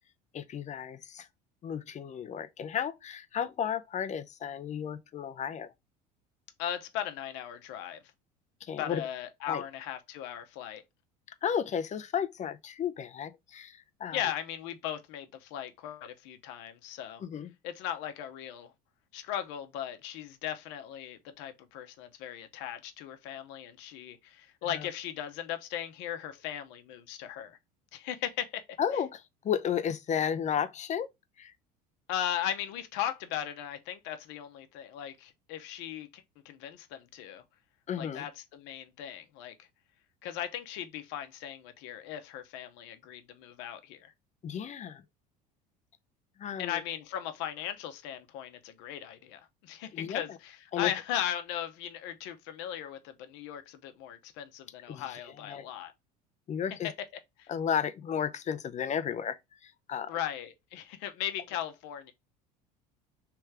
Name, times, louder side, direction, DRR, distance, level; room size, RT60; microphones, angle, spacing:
voice 1, 0.3-1.3 1.6-5.7 8.6-9.0 9.5-9.6 11.4-14.3 17.2-17.5 24.7-24.9 28.8-31.1 31.4-31.5 37.9-38.3 44.4-45.0 46.4-46.8 49.9-50.2 50.7-50.9 54.9-55.6 56.5-56.9 57.5-60.1, left 8 dB, 35° left, 0.6 m, -33 dB
voice 2, 6.6-8.0 8.7-10.8 14.1-17.2 17.6-18.7 19.1-27.6 27.9-28.8 32.1-37.4 38.0-39.5 40.2-44.1 46.6-55.9 57.4-57.5 60.1-62.1, left 10 dB, 65° left, 0.9 m, -38 dB
3.4 x 3.2 x 4.7 m
hypercardioid pair, 75°, 21 cm